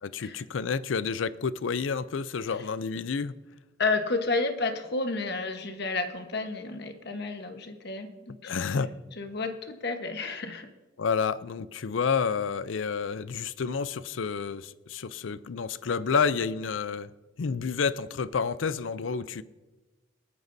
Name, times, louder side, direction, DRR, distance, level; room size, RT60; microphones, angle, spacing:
voice 1, 0.0-3.3 8.4-8.9 11.0-17.1 17.4-19.4, left 5 dB, 80° left, 16 dB, 0.5 m, -29 dB
voice 2, 3.8-10.7, left 3 dB, 60° left, 6 dB, 1.2 m, -31 dB
27.5 x 9.3 x 2.7 m, 1.2 s
head